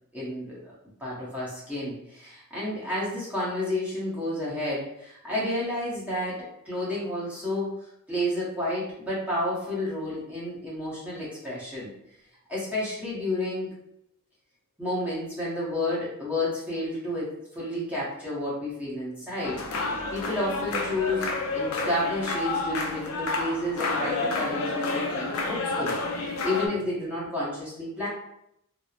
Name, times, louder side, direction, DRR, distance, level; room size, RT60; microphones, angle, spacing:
voice 1, 0.1-7.7 8.1-11.9 12.5-13.7 14.8-19.6 20.1-25.9 26.4-28.1, left 1 dB, 5° right, -8 dB, 0.8 m, -31 dB
sound 1, 19.4-26.7, left 3 dB, 70° left, 0.4 m, -30 dB
2.9 x 2.0 x 2.3 m, 0.75 s
head